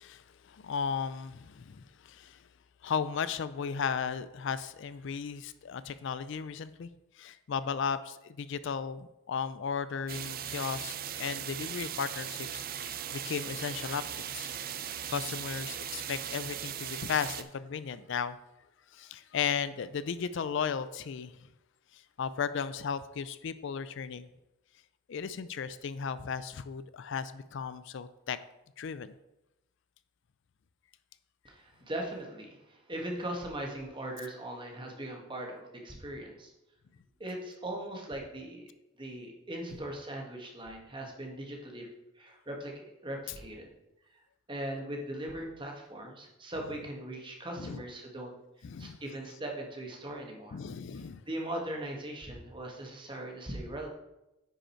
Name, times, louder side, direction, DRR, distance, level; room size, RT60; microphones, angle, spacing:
voice 1, 0.0-2.4 2.8-6.9 7.2-14.0 14.3-14.5 14.8-18.4 18.9-21.3 21.9-24.3 25.1-28.4 28.8-29.1 47.6-47.8 48.6-49.0 50.5-51.2, left 6 dB, 60° left, 14 dB, 0.4 m, -35 dB
sound 1, 10.1-17.4, right 9 dB, 45° right, 0.5 m, -38 dB
voice 2, 31.4-36.5 37.2-38.7 39.0-41.9 42.2-43.7 44.5-48.3 48.8-50.6 51.3-53.9, right 1 dB, 25° right, 1 dB, 1.5 m, -39 dB
9.6 x 5.2 x 4.4 m, 0.92 s
head